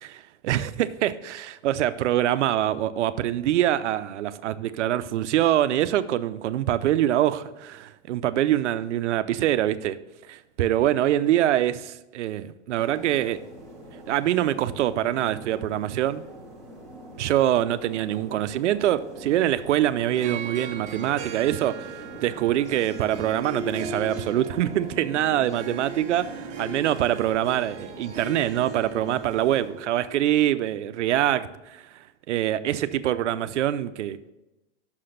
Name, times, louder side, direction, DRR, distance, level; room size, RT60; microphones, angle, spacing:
voice 1, 0.0-10.0 10.3-13.4 14.1-16.2 17.2-21.9 22.2-34.3, right 12 dB, 90° right, 13 dB, 0.6 m, -24 dB
sound 1, 12.8-29.7, right 1 dB, 5° left, 1.2 m, -43 dB
Harp, 20.1-30.4, right 3 dB, 20° right, 0.8 m, -39 dB
6.1 x 5.8 x 6.4 m, 0.98 s
supercardioid pair, 160°, 35 cm